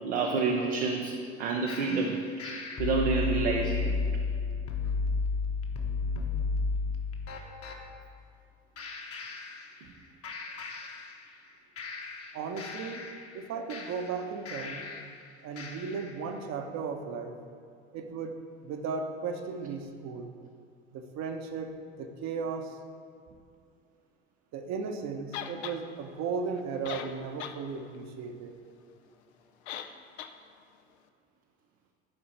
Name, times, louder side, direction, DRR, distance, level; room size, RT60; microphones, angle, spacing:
voice 1, 0.0-4.0, right 4 dB, 80° right, 1 dB, 0.7 m, -29 dB
sound 1, 1.7-7.8 8.8-10.0 10.2-11.5 11.8-15.2 15.6-16.2, left 4 dB, 45° left, 1.2 m, -34 dB
voice 2, 12.3-13.1 13.3-14.8 15.4-17.4 17.9-18.4 18.6-20.3 20.9-22.8 24.5-28.5, right 5 dB, 50° right, 6 dB, 1.0 m, -36 dB
sound 2, 25.3-25.8 26.6-26.7 26.8-27.6 27.9-28.0 29.7-29.9 30.2-30.3, left 9 dB, 75° left, 0.6 m, -38 dB
11.5 x 4.6 x 4.3 m, 2.3 s
figure-of-eight pair, 55°, 34 cm